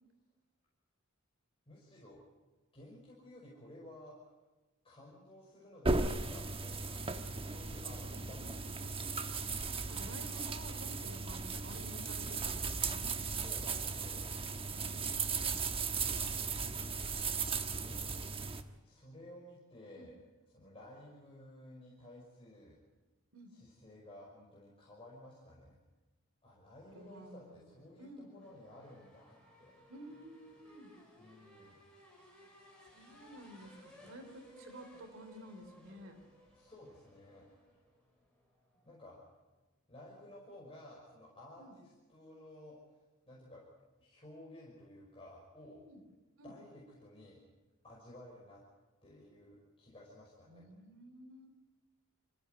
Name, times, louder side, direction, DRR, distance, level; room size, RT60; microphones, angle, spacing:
voice 1, 1.7-2.2 2.7-4.2 4.8-7.0 7.3-9.1 13.3-14.3 16.6-17.3 17.6-18.0 18.8-20.1 20.5-22.8 23.5-25.8 26.4-29.7 31.2-31.8 36.5-37.4 38.8-39.2 39.9-42.8 43.3-43.6 44.0-45.8 46.4-47.4 47.8-48.6 49.0-50.6, left 1 dB, 25° left, -5 dB, 5.7 m, -54 dB
sound 1, 5.8-18.6, right 4 dB, 25° right, 1.3 m, -37 dB
voice 2, 8.1-9.2 9.9-13.2 14.7-15.6 20.0-20.1 23.3-23.5 26.9-27.7 28.0-28.3 29.9-30.9 32.9-36.2 41.6-41.7 45.8-46.0 46.4-46.5 50.5-51.5, right 1 dB, 65° right, 7 dB, 3.3 m, -52 dB
sound 2, 26.9-39.4, equal, 5° left, 7.0 m, -61 dB
26.0 x 16.0 x 9.2 m, 1.1 s
head